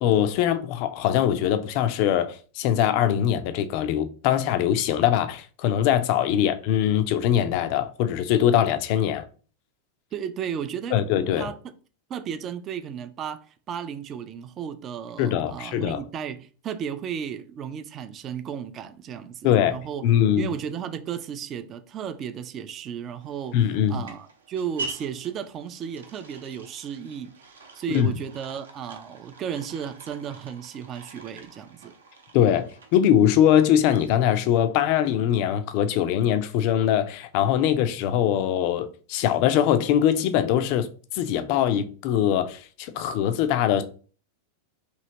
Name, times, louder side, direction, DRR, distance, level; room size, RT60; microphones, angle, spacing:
voice 1, 0.0-9.3 10.9-11.5 15.2-16.0 19.4-19.8 20.0-20.5 23.5-24.1 27.9-28.1 32.3-40.9 41.1-43.8, left 10 dB, 45° left, 0.3 m, -22 dB
voice 2, 10.1-11.1 11.4-11.6 12.1-20.1 20.3-27.3 27.7-31.9, right 8 dB, 30° right, 0.3 m, -34 dB
sound 1, 23.2-34.5, right 3 dB, 70° right, 0.6 m, -44 dB
3.0 x 2.7 x 2.8 m
figure-of-eight pair, 90°, 0 cm